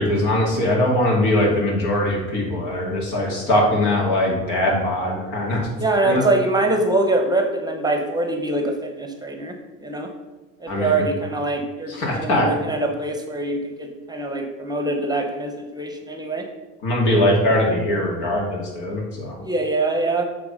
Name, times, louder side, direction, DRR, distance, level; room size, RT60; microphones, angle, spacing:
voice 1, 0.0-5.7 6.1-6.2 10.7-11.1 11.9-12.5 16.8-19.4, left 1 dB, 70° left, -1 dB, 2.4 m, -21 dB
voice 2, 5.8-9.5 9.8-10.1 10.6-16.5 19.4-20.2, right 2 dB, 10° right, 4 dB, 0.8 m, -23 dB
7.9 x 3.4 x 5.2 m, 1.2 s
supercardioid pair, 105°, 33 cm